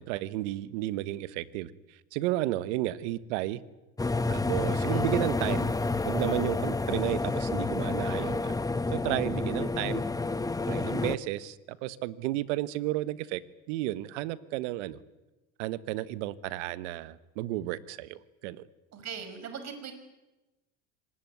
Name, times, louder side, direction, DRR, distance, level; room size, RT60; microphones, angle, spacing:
voice 1, 0.0-1.7 2.1-3.6 4.3-5.7 6.0-8.5 8.9-10.0 10.7-13.4 13.7-15.0 15.6-18.6, right 15 dB, 75° right, 15 dB, 1.3 m, -32 dB
sound 1, 4.0-11.2, left 3 dB, 10° left, 1.0 m, -29 dB
voice 2, 4.5-5.1 18.9-19.9, right 7 dB, 45° right, 9 dB, 5.8 m, -41 dB
24.5 x 19.5 x 9.5 m, 1.1 s
supercardioid pair, 90°, 36 cm